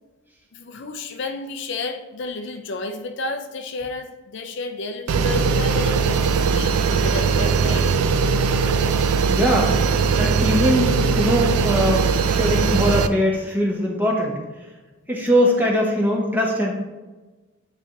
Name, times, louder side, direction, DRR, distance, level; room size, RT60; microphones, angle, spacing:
voice 1, 0.5-7.9 8.8-9.0, left 3 dB, 55° left, 6 dB, 0.4 m, -31 dB
sound 1, 5.1-13.1, right 5 dB, 90° right, 0.4 m, -20 dB
voice 2, 9.3-9.8 10.2-14.4 15.1-16.7, equal, 10° right, -2 dB, 1.0 m, -21 dB
9.3 x 3.2 x 3.8 m, 1.2 s
head